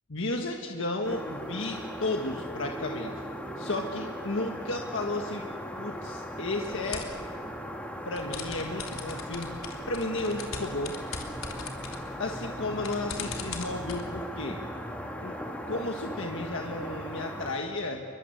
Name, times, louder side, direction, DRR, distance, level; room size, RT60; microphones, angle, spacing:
voice 1, 0.1-3.2 3.6-5.4 5.8-7.1 8.0-11.0 12.2-14.6 15.2-15.4 15.7-18.0, left 2 dB, 70° left, 3 dB, 1.6 m, -33 dB
sound 1, 1.0-17.5, equal, 5° left, 2.3 m, -38 dB
sound 2, 6.6-7.2 8.2-14.0, left 5 dB, 85° left, 3.5 m, -41 dB
29.0 x 23.5 x 8.0 m, 2.5 s
head